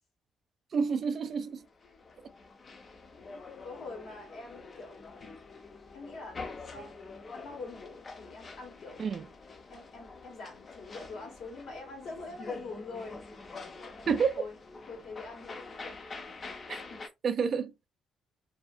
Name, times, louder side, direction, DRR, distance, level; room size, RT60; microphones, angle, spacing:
voice 1, 0.7-1.7 9.0-9.3 14.1-14.3 16.7-16.8 17.2-17.7, right 6 dB, 50° right, 0.4 m, -29 dB
sound 1, 1.5-17.1, left 3 dB, 40° left, 0.5 m, -46 dB
voice 2, 3.2-5.0 5.9-6.4 6.7-7.0 7.3-9.1 9.7-13.2 13.7-14.1 14.3-14.6 14.9-16.1 16.5-17.0, left 3 dB, 70° left, 1.4 m, -45 dB
2.7 x 2.4 x 2.4 m
cardioid pair, 90°, 0 cm